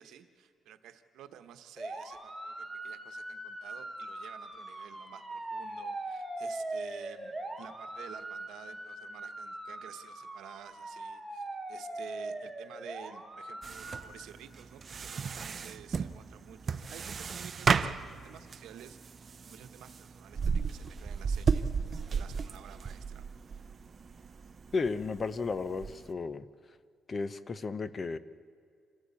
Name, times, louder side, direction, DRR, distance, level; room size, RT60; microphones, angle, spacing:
voice 1, 0.0-19.0 19.4-23.4, right 10 dB, 85° right, 9 dB, 1.1 m, -52 dB
sound 1, 1.8-14.2, right 2 dB, 5° right, 1.6 m, -41 dB
sound 2, 13.6-26.1, right 5 dB, 40° right, 0.6 m, -35 dB
voice 2, 24.7-26.4 27.1-28.2, left 4 dB, 30° left, 15 dB, 0.7 m, -33 dB
27.0 x 13.0 x 8.4 m, 2.2 s
cardioid pair, 130°, 0 cm